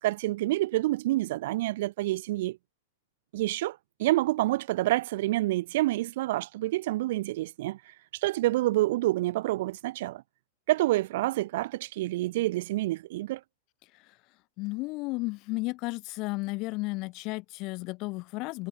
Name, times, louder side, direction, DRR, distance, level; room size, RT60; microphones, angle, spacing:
voice 1, 0.0-2.6 3.3-7.8 8.2-10.2 10.7-13.4, right 17 dB, 60° right, 4.6 m, -28 dB
voice 2, 14.6-18.7, left 24 dB, 40° left, 4.4 m, -33 dB
supercardioid pair, 145°, 0 cm